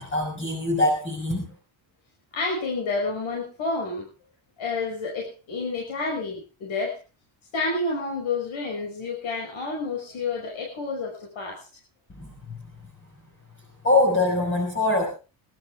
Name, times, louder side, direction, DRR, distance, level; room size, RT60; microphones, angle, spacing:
voice 1, 0.0-1.5 12.2-12.6 13.8-15.1, left 2 dB, 25° left, 1 dB, 5.5 m, -23 dB
voice 2, 2.3-4.1 4.6-7.0 7.5-11.7, left 3 dB, 75° left, 0 dB, 6.1 m, -29 dB
24.0 x 13.0 x 3.5 m, 0.34 s
cardioid pair, 155°, 48 cm